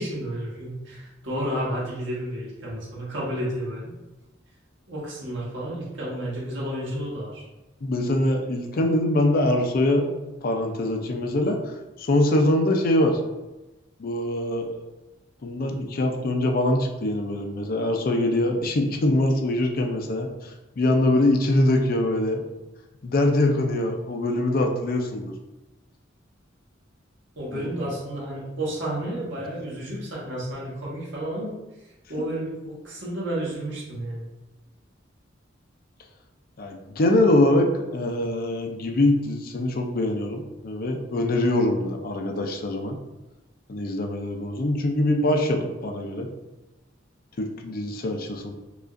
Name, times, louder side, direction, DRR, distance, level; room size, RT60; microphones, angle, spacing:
voice 1, 0.0-3.9 4.9-7.4 27.4-31.6 32.1-34.2, right 1 dB, 70° right, -6 dB, 1.4 m, -31 dB
voice 2, 7.8-10.1 10.4-11.6 12.0-13.2 14.0-14.8 15.4-20.3 20.8-22.4 23.0-25.3 27.5-27.9 36.6-43.0 43.7-46.3 47.4-48.5, left 1 dB, 50° left, 3 dB, 0.4 m, -23 dB
4.9 x 2.4 x 2.5 m, 1.0 s
head